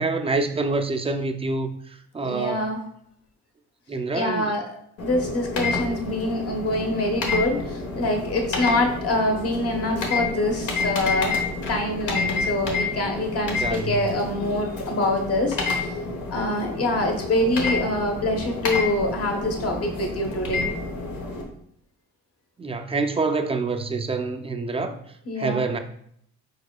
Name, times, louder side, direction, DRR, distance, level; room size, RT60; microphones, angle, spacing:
voice 1, 0.0-2.7 3.9-4.5 13.6-14.1 22.6-25.0 25.4-25.8, right 3 dB, 20° right, 6 dB, 0.4 m, -26 dB
voice 2, 2.2-2.8 4.1-11.4 11.7-15.9 16.3-20.7 25.3-25.6, left 1 dB, 50° left, 3 dB, 1.1 m, -25 dB
sound 1, 5.0-21.4, left 3 dB, 80° left, 1.1 m, -29 dB
4.8 x 4.5 x 2.3 m, 0.69 s
cardioid pair, 90°, 30 cm